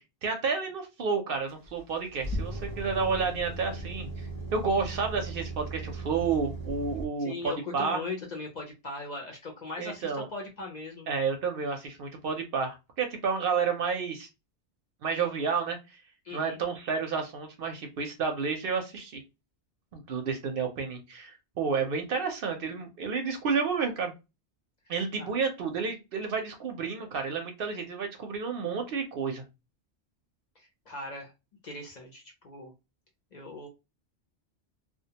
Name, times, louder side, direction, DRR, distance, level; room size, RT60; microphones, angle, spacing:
voice 1, 0.2-8.0 9.8-10.3 11.1-14.3 15.0-16.0 16.3-19.2 19.9-24.1 24.9-29.4, right 5 dB, 65° right, 5 dB, 0.7 m, -31 dB
sound 1, 1.5-7.0, right 2 dB, 25° right, 0.6 m, -37 dB
voice 2, 7.2-11.1 16.2-16.6 25.2-25.3 30.6-31.3 31.6-32.7 33.3-33.7, left 3 dB, 50° left, 1 dB, 0.6 m, -39 dB
2.3 x 2.1 x 2.7 m, 0.26 s
omnidirectional pair, 1.1 m